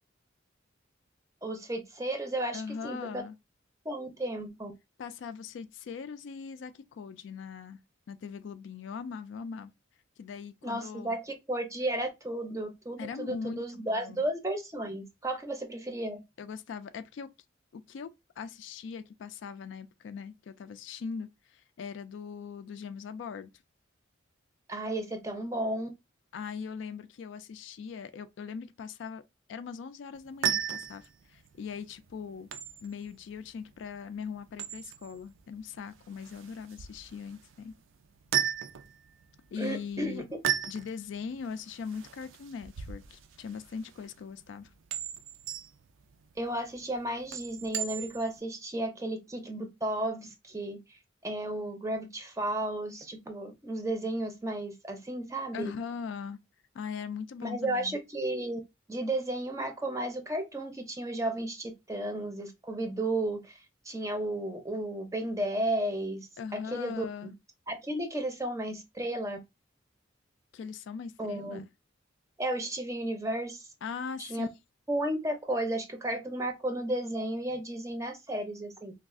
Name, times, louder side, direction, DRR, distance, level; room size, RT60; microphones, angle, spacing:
voice 1, 1.4-3.2 3.8-4.7 10.6-16.2 24.7-25.9 39.6-40.2 46.4-55.7 57.4-58.6 58.9-63.6 63.9-67.3 67.7-69.4 71.2-71.6 72.4-73.7 74.2-74.5 74.9-78.9, right 1 dB, 15° right, 0.5 m, -33 dB
voice 2, 2.5-3.3 5.0-7.8 8.1-9.7 10.2-11.2 13.0-14.3 16.4-17.3 17.7-23.5 26.3-29.2 29.5-32.5 32.8-37.7 39.5-40.3 40.7-44.7 55.5-56.4 56.7-58.0 66.4-67.3 70.5-71.6 73.8-74.5, left 6 dB, 65° left, 0.3 m, -40 dB
sound 1, 30.1-48.4, right 9 dB, 80° right, 0.4 m, -37 dB
2.4 x 2.3 x 3.6 m
head